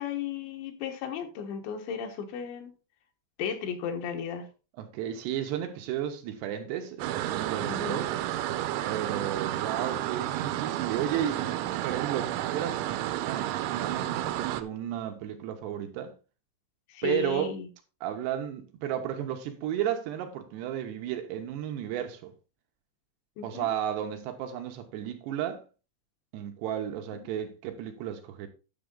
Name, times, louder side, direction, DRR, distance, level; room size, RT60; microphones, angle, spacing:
voice 1, 0.0-2.7 3.4-4.5 7.7-8.0 16.9-17.7 23.4-23.7 27.1-27.2, left 8 dB, 75° left, 3.5 m, -35 dB
voice 2, 4.8-8.1 8.8-12.9 13.3-16.1 17.0-17.5 18.0-22.3 23.4-25.6 26.3-28.5, right 10 dB, 75° right, 2.9 m, -33 dB
sound 1, 7.0-14.6, right 13 dB, 90° right, 3.1 m, -31 dB
10.5 x 6.8 x 3.7 m
omnidirectional pair, 5.3 m